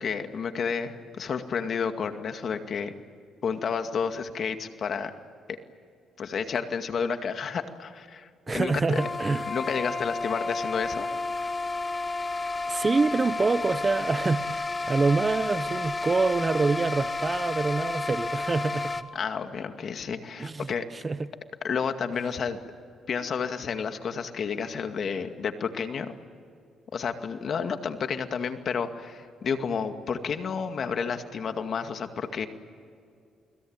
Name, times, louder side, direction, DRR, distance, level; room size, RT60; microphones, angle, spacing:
voice 1, 0.0-2.9 3.4-5.2 5.5-5.6 6.2-11.1 19.1-20.9 21.6-22.6 23.1-26.1 26.9-32.5, left 6 dB, 55° left, 2.2 m, -31 dB
voice 2, 8.5-9.4 12.7-14.6 14.9-19.1 20.4-21.3, right 3 dB, 30° right, 0.9 m, -26 dB
sound 1, 9.0-19.0, left 3 dB, 25° left, 1.3 m, -31 dB
29.5 x 21.5 x 9.0 m
cardioid pair, 90°, 0 cm